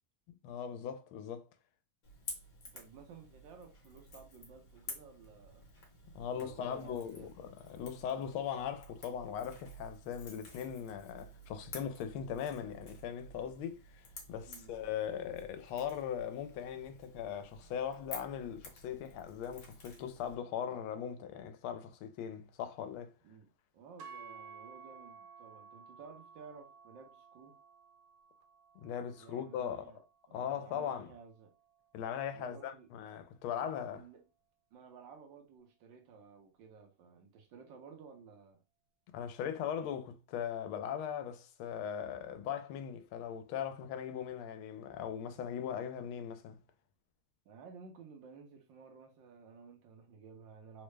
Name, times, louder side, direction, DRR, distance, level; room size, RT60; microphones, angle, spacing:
voice 1, 0.4-1.5 6.1-14.0 14.3-23.1 28.8-29.9 30.3-31.1 31.9-34.0 39.1-46.6, left 8 dB, 85° left, 1.4 m, -39 dB
Crackle / Crack, 2.0-20.3, left 2 dB, 50° left, 1.2 m, -52 dB
voice 2, 2.7-5.7 6.3-7.3 14.4-15.0 23.2-27.6 29.1-30.0 30.3-31.5 32.3-32.9 33.6-34.2 34.7-38.6 47.4-50.8, right 5 dB, 70° right, 1.3 m, -55 dB
sound 1, 24.0-32.2, right 5 dB, 90° right, 1.6 m, -55 dB
3.7 x 2.1 x 3.2 m
omnidirectional pair, 2.3 m